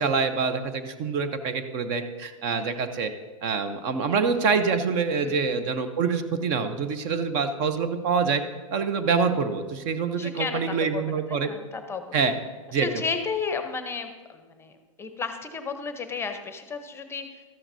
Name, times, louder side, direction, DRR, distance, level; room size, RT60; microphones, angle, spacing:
voice 1, 0.0-3.1 3.4-8.4 8.7-11.5 12.1-12.3 12.7-13.0, right 5 dB, 45° right, 9 dB, 0.8 m, -26 dB
voice 2, 10.1-11.0 11.3-12.4 12.7-14.7 15.0-17.4, left 5 dB, 15° left, 7 dB, 0.8 m, -33 dB
13.5 x 9.9 x 2.7 m, 1.3 s
hypercardioid pair, 110°, 17 cm